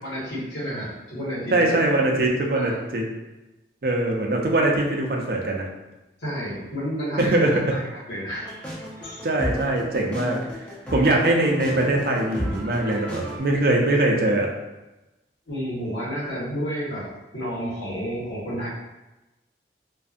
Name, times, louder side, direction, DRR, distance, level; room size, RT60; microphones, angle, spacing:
voice 1, 0.0-1.8 2.5-2.8 6.2-7.4 7.7-7.8 8.1-9.2 15.5-17.1 17.3-18.7, equal, 85° left, -8 dB, 1.2 m, -31 dB
voice 2, 1.5-3.0 3.8-5.6 7.2-7.5 9.2-10.4 10.9-14.5, right 2 dB, 55° right, 0 dB, 0.4 m, -22 dB
sound 1, 8.4-13.4, equal, 5° left, 0.5 m, -33 dB
2.5 x 2.4 x 2.4 m, 1.0 s
head